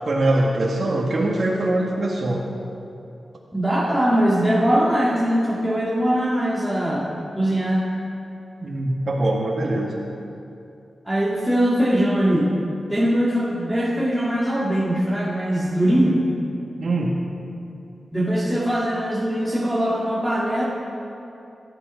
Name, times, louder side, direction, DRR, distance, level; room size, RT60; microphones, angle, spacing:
voice 1, 0.1-2.4 8.6-10.0 16.8-17.1, right 1 dB, 55° right, -3 dB, 1.9 m, -22 dB
voice 2, 3.5-7.1 7.4-7.8 11.1-12.5 12.9-16.2 18.1-20.6, equal, 5° right, -6 dB, 2.0 m, -21 dB
18.5 x 13.0 x 5.2 m, 2.7 s
wide cardioid pair, 95°, 0 cm